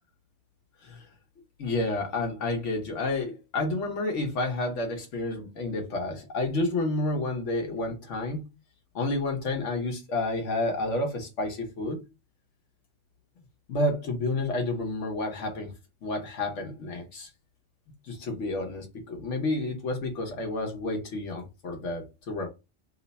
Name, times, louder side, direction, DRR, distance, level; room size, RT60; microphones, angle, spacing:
voice 1, 1.6-8.4 8.9-12.0 13.7-15.7 16.0-17.3 18.1-22.5, left 2 dB, 85° left, 1.2 m, -30 dB
3.1 x 2.1 x 4.0 m
omnidirectional pair, 1.2 m